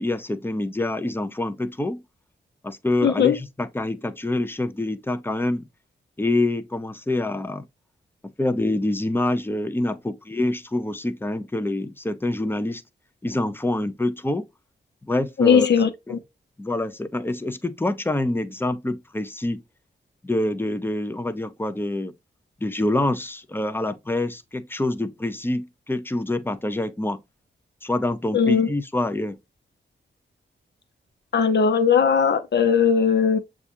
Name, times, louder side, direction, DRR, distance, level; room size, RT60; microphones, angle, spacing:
voice 1, 0.0-2.0 2.6-5.6 6.2-7.7 8.4-12.8 13.2-14.5 15.0-15.7 16.1-16.2 16.6-19.6 20.2-22.1 22.6-27.2 27.8-29.4, left 2 dB, 10° left, 0.5 m, -26 dB
voice 2, 3.0-3.4 15.4-16.2 28.3-28.7 31.3-33.4, left 6 dB, 60° left, 0.8 m, -19 dB
7.0 x 2.4 x 2.6 m
cardioid pair, 75°, 20 cm